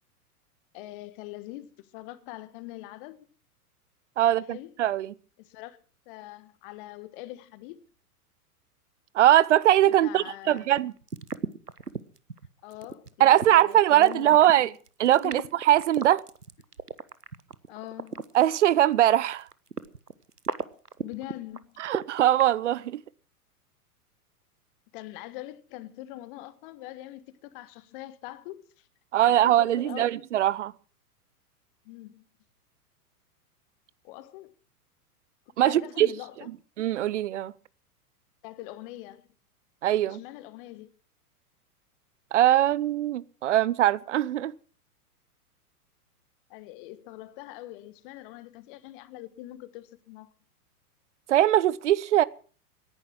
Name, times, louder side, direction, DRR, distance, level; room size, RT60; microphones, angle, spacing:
voice 1, 0.7-1.7 1.9-3.2 4.2-4.7 5.4-5.8 6.1-7.8 10.0-10.7 12.6-14.7 15.0-15.5 17.7-18.2 21.0-21.9 24.9-28.9 29.2-30.1 31.8-32.2 34.0-34.5 35.6-36.5 38.4-39.2 40.0-40.9 46.5-50.3, left 16 dB, 35° left, 1.3 m, -43 dB
voice 2, 4.2-5.1 9.1-10.9 13.2-14.7 15.0-16.2 18.3-19.5 21.8-23.0 29.1-30.7 35.6-36.1 36.8-37.5 39.8-40.2 42.3-44.5 51.3-52.2, right 12 dB, 50° right, 0.8 m, -21 dB
sound 1, 10.5-18.7 19.0-22.5, right 5 dB, 85° right, 1.1 m, -36 dB
18.0 x 11.0 x 6.0 m
figure-of-eight pair, 100°, 45 cm